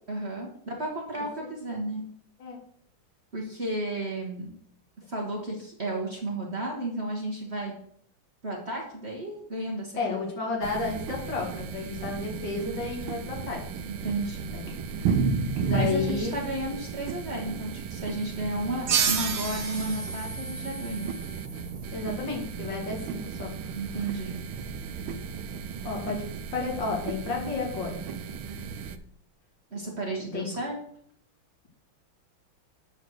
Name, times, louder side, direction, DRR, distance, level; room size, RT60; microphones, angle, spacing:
voice 1, 0.1-2.0 3.3-4.5 5.1-7.7 8.4-10.2 13.9-14.5 15.6-21.1 23.8-24.3 29.7-30.8, right 1 dB, 35° right, -2 dB, 1.3 m, -33 dB
voice 2, 10.0-13.6 14.5-14.6 15.6-16.3 21.9-23.8 25.8-26.2 26.5-28.0 30.3-30.5, left 4 dB, 65° left, 0 dB, 2.3 m, -32 dB
sound 1, 10.6-29.0, right 5 dB, 80° right, 1.5 m, -34 dB
sound 2, 18.9-22.1, right 7 dB, 55° right, 1.4 m, -31 dB
8.2 x 4.1 x 6.2 m, 0.66 s
omnidirectional pair, 2.2 m